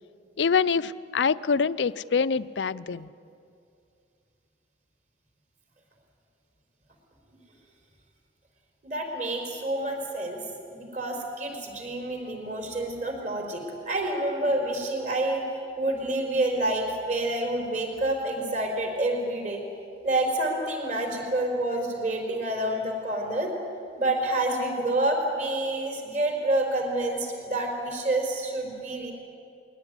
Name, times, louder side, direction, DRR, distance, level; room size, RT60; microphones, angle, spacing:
voice 1, 0.4-3.1, left 5 dB, 80° left, 15 dB, 0.5 m, -25 dB
voice 2, 8.8-10.4 10.7-15.4 15.8-19.6 20.0-23.5 24.0-29.1, right 1 dB, 40° right, 2 dB, 4.8 m, -28 dB
21.5 x 18.0 x 9.8 m, 2.5 s
head